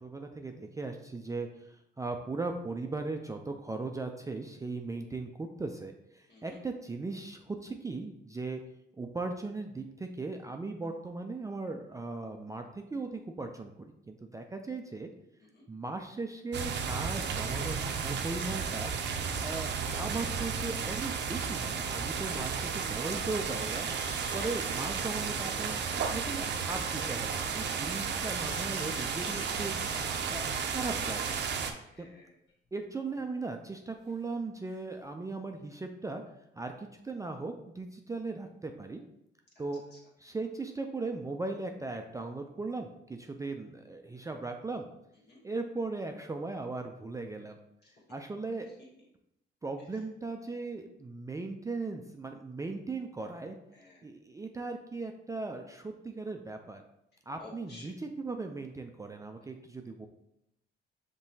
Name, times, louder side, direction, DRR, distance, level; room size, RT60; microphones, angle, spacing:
voice 1, 0.0-8.6 9.0-15.1 15.7-18.9 19.4-23.9 24.3-25.8 26.1-29.7 30.3-31.4 32.0-32.1 32.7-36.2 36.6-39.0 39.6-39.8 40.2-44.9 45.4-47.6 48.1-48.7 49.6-53.6 54.0-56.8 57.3-60.1, right 3 dB, 15° right, 4 dB, 0.4 m, -38 dB
sound 1, 16.5-31.7, right 6 dB, 60° right, 0.5 m, -33 dB
sound 2, 23.5-24.7 28.3-30.5 31.7-31.9 32.5-32.6 33.2-33.3 34.1-34.2 34.6-34.8, left 3 dB, 75° left, 0.9 m, -49 dB
voice 2, 31.6-32.3 45.3-45.4 53.7-54.0 57.4-57.9, left 2 dB, 55° left, -4 dB, 1.6 m, -52 dB
5.5 x 3.0 x 2.7 m, 0.80 s
cardioid pair, 90°, 20 cm